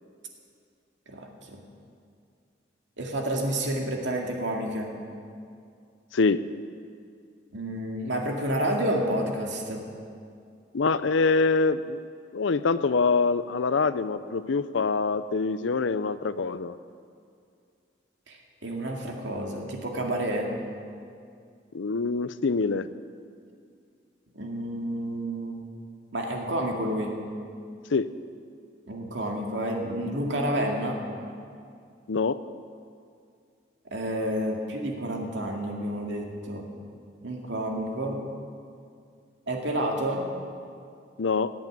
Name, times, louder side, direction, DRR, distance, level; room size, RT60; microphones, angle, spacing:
voice 1, 1.1-1.6 3.0-5.0 7.5-9.9 18.3-20.5 24.3-25.6 26.1-27.2 28.9-31.0 33.9-36.7 37.2-38.2 39.5-40.3, right 1 dB, 75° right, 1 dB, 2.3 m, -30 dB
voice 2, 10.7-12.0 12.3-16.8 21.7-22.9 27.9-28.1 32.1-32.4 41.2-41.5, left 4 dB, 85° left, 14 dB, 0.6 m, -25 dB
16.5 x 8.5 x 8.9 m, 2.3 s
head